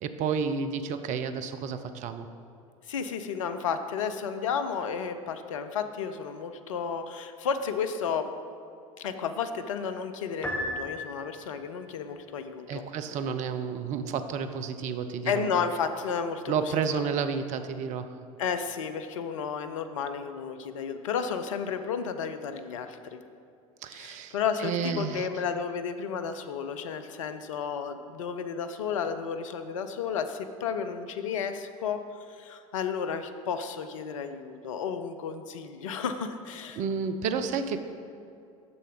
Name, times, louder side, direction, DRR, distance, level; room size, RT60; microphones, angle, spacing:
voice 1, 0.0-2.3 12.7-15.5 16.5-18.2 23.8-25.3 36.7-37.8, right 6 dB, 45° right, 9 dB, 0.6 m, -31 dB
voice 2, 2.9-8.3 9.0-12.9 15.2-17.1 18.4-23.2 23.9-32.0 32.3-36.8, left 6 dB, 70° left, 9 dB, 0.6 m, -32 dB
Piano, 10.4-11.7, left 1 dB, 10° left, 1.5 m, -34 dB
7.0 x 6.8 x 4.9 m, 2.5 s
figure-of-eight pair, 65°, 17 cm